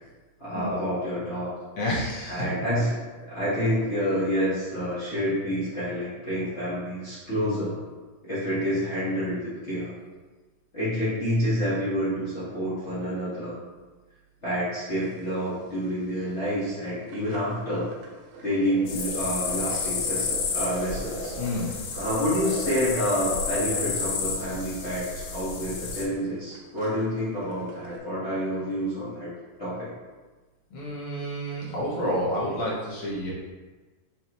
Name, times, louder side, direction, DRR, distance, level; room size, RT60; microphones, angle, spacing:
voice 1, 0.4-1.5 2.3-7.8 8.2-9.9 10.7-13.6 14.4-17.9 18.4-21.3 21.9-29.3 29.6-29.9, equal, 45° left, -13 dB, 0.9 m, -28 dB
voice 2, 1.8-2.4 21.3-21.7 30.7-33.3, equal, 65° left, -6 dB, 1.5 m, -29 dB
sound 1, 14.7-15.2 15.5-15.6 15.9-16.0 16.5-16.6 16.8-28.0, right 1 dB, 80° right, 2.0 m, -39 dB
sound 2, 18.9-26.0, left 5 dB, 85° left, 2.0 m, -31 dB
5.5 x 3.1 x 3.0 m, 1.3 s
omnidirectional pair, 3.4 m